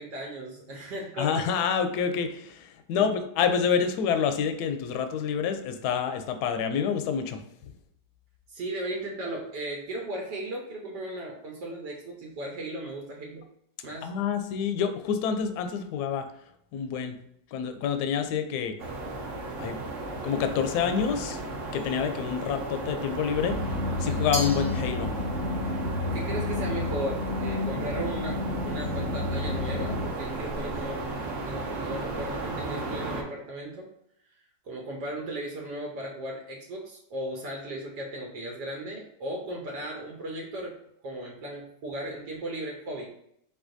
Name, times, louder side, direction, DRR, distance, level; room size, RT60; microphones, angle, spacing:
voice 1, 0.0-1.3 3.0-3.1 8.5-13.4 13.8-14.1 25.7-25.8 26.1-33.9 34.6-40.7 41.0-43.1, right 1 dB, 80° right, -1 dB, 1.4 m, -36 dB
voice 2, 1.2-7.4 14.0-16.3 16.7-17.2 17.5-18.8 19.6-19.8 20.2-21.4 21.7-25.1, left 7 dB, 75° left, 8 dB, 1.0 m, -28 dB
sound 1, 18.8-33.2, right 2 dB, 60° right, 0.9 m, -35 dB
sound 2, 23.4-30.1, left 2 dB, 30° left, 0.7 m, -31 dB
Glass, 24.3-25.5, left 1 dB, 35° right, 0.7 m, -36 dB
4.7 x 4.0 x 2.5 m, 0.72 s
omnidirectional pair, 1.9 m